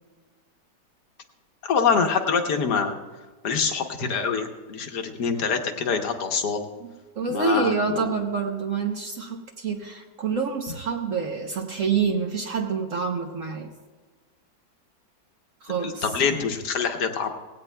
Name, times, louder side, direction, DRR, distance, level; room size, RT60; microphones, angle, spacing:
voice 1, 1.7-2.9 3.4-6.6 7.3-8.1 16.0-17.3, left 5 dB, 65° left, 5 dB, 1.5 m, -25 dB
voice 2, 6.8-13.7 15.6-16.1, right 5 dB, 55° right, 3 dB, 1.0 m, -27 dB
18.5 x 16.5 x 2.2 m, 1.4 s
omnidirectional pair, 2.0 m